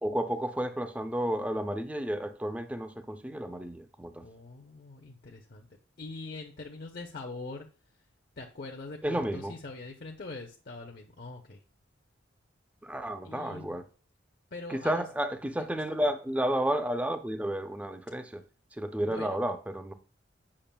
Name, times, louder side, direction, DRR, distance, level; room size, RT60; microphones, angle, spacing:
voice 1, 0.0-4.3 9.0-9.5 12.8-13.9 14.7-18.4 18.7-19.9, right 1 dB, 5° right, 0.5 m, -32 dB
voice 2, 4.2-5.7 6.0-7.7 8.4-11.6 13.2-13.8 14.5-15.0 15.6-16.0 19.0-19.4, left 3 dB, 50° left, 0.7 m, -43 dB
8.6 x 5.9 x 2.2 m
head